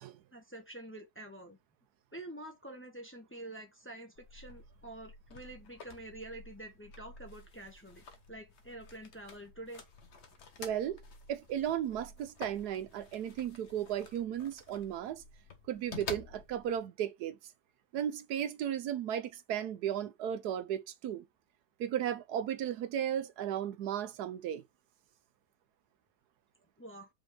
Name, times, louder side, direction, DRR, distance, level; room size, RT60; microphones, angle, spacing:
voice 1, 0.3-1.6 2.1-9.8 26.8-27.1, right 1 dB, 10° left, 0.6 m, -47 dB
sound 1, 4.1-16.8, left 4 dB, 45° left, 1.0 m, -50 dB
voice 2, 10.6-11.0 11.3-15.2 15.7-17.4 17.9-21.2 21.8-24.6, right 10 dB, 70° right, 1.0 m, -35 dB
5.3 x 3.6 x 4.8 m
omnidirectional pair, 2.0 m